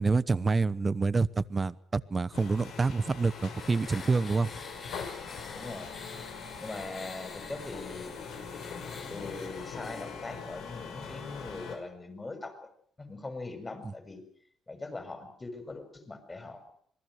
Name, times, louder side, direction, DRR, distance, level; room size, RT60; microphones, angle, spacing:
voice 1, 0.0-4.5, right 4 dB, 30° right, 17 dB, 1.0 m, -27 dB
sound 1, 2.3-11.8, left 5 dB, 85° left, 6.0 m, -42 dB
sound 2, 2.7-10.2, left 4 dB, 45° left, 7.0 m, -47 dB
voice 2, 5.5-6.0 6.6-8.2 9.1-12.6 13.0-14.2 14.7-16.7, left 3 dB, 25° left, 8 dB, 6.6 m, -41 dB
27.0 x 21.0 x 6.5 m, 0.63 s
cardioid pair, 90°, 0 cm